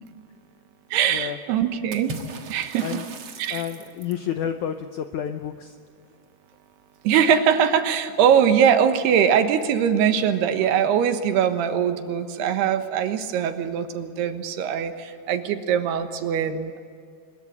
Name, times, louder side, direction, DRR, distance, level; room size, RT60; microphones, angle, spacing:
voice 1, 0.9-2.1 2.5-2.9 3.4-3.6 7.0-16.8, right 8 dB, 80° right, 8 dB, 3.3 m, -22 dB
Water / Splash splatter, 1.9-4.3, right 3 dB, 60° right, 1.4 m, -38 dB
voice 2, 3.5-5.8, left 9 dB, 90° left, 7 dB, 1.7 m, -30 dB
23.5 x 21.5 x 8.7 m, 2.2 s
omnidirectional pair, 4.7 m